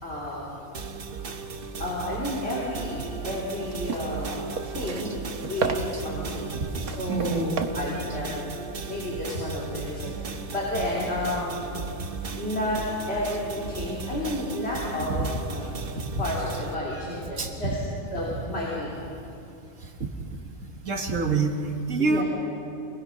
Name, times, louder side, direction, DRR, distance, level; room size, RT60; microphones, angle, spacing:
voice 1, 0.0-0.6 1.8-5.1 5.5-11.7 12.4-12.8 13.1-15.7 16.2-17.8 18.1-18.9 22.0-22.2, left 1 dB, 45° left, -6 dB, 3.6 m, -31 dB
sound 1, 0.7-16.7, right 4 dB, 45° right, 1.1 m, -36 dB
sound 2, 3.3-9.3, right 5 dB, 85° right, 1.6 m, -35 dB
voice 2, 7.1-7.6 15.2-15.3 16.0-16.1 17.4-17.5 20.8-22.2, right 3 dB, 60° right, 3 dB, 2.1 m, -26 dB
25.5 x 19.0 x 5.6 m, 2.7 s
omnidirectional pair, 1.5 m